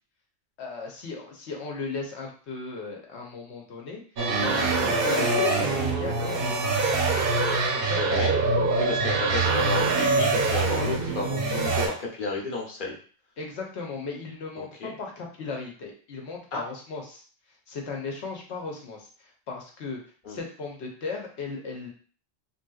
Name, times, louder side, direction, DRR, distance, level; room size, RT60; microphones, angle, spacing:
voice 1, 0.6-4.0 4.4-6.5 7.7-8.3 13.4-17.2 17.7-20.0 20.3-21.9, left 4 dB, 85° left, 0 dB, 1.1 m, -36 dB
sound 1, 4.2-11.9, right 3 dB, 60° right, 0.8 m, -24 dB
voice 2, 8.0-8.4 8.8-13.0 14.6-14.9 16.5-16.6 20.2-20.4, left 3 dB, 50° left, -2 dB, 1.0 m, -32 dB
3.4 x 2.7 x 2.3 m, 0.42 s
omnidirectional pair, 1.1 m